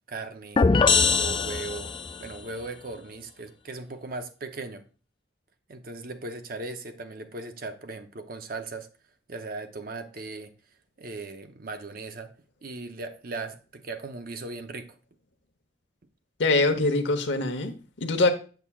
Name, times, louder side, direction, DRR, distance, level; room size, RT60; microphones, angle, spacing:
voice 1, 0.1-1.9 2.2-4.8 5.7-8.9 9.3-10.5 11.0-12.3 12.6-14.9, right 3 dB, 50° right, 0.7 m, -38 dB
sound 1, 0.6-2.3, left 5 dB, 25° left, 0.3 m, -22 dB
voice 2, 16.4-18.3, left 2 dB, 80° left, 0.9 m, -24 dB
8.0 x 6.9 x 2.3 m
head